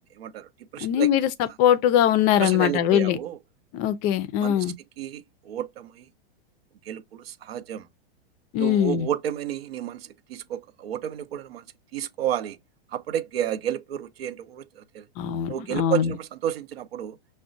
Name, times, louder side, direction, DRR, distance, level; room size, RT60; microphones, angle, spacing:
voice 1, 0.2-1.1 2.4-3.4 4.4-6.1 6.8-7.9 8.6-11.6 11.9-12.6 12.9-15.0 15.5-17.2, right 10 dB, 80° right, 0.7 m, -31 dB
voice 2, 0.8-1.3 1.6-3.2 3.7-4.7 8.5-9.1 15.2-16.1, left 10 dB, 30° left, 0.4 m, -21 dB
5.9 x 2.2 x 2.6 m
hypercardioid pair, 140°, 30 cm